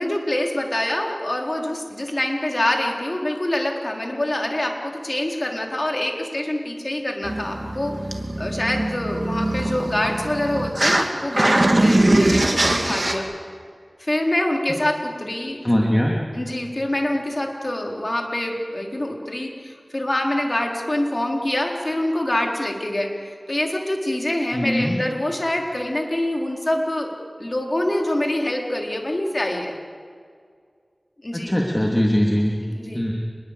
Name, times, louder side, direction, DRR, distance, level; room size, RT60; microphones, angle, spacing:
voice 1, 0.0-13.2 14.0-15.6 16.3-27.1 27.4-29.7 31.2-31.5 32.7-33.1, left 1 dB, 40° left, 1 dB, 4.1 m, -25 dB
sound 1, 7.2-11.0 11.3-13.1, right 1 dB, 40° right, 2.8 m, -21 dB
voice 2, 15.4-16.2 24.5-25.0 31.3-32.6 32.9-33.1, equal, 15° left, -1 dB, 2.9 m, -21 dB
27.5 x 22.0 x 8.4 m, 2.1 s
wide cardioid pair, 55°, 0 cm